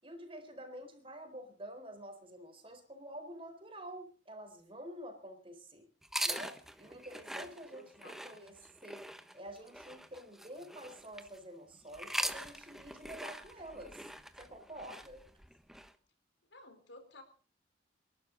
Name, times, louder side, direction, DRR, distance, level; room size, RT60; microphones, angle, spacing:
voice 1, 0.0-5.8 6.2-8.6 8.8-9.0 9.3-14.1 14.4-15.2, right 1 dB, 30° right, 6 dB, 4.3 m, -48 dB
sound 1, 6.0-11.4 11.9-15.9, right 1 dB, ahead, 1.1 m, -42 dB
voice 2, 7.8-8.7 16.5-17.2, left 2 dB, 80° left, 7 dB, 4.3 m, -56 dB
28.5 x 12.0 x 4.0 m, 0.39 s
head